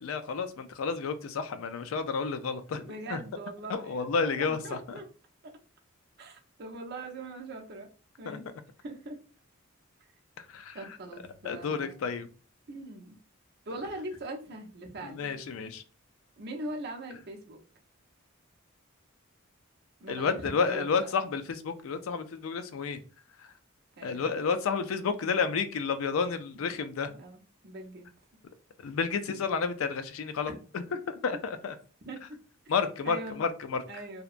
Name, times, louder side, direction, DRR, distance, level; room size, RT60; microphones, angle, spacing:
voice 1, 0.0-3.2 3.7-4.8 8.3-8.4 10.5-10.8 11.4-12.3 15.0-15.8 20.1-23.0 24.0-27.1 28.8-30.8 31.2-31.7 32.7-33.8, left 5 dB, 80° left, 10 dB, 0.4 m, -31 dB
voice 2, 2.8-5.0 5.4-5.5 6.2-7.9 8.2-9.2 10.7-11.9 12.7-13.2 13.7-15.3 16.4-17.6 20.0-21.1 24.0-24.4 26.5-28.1 30.5-30.6 32.1-32.4 33.0-33.4 33.9-34.2, right 2 dB, 50° right, 2 dB, 0.6 m, -41 dB
2.7 x 2.1 x 2.4 m, 0.37 s
head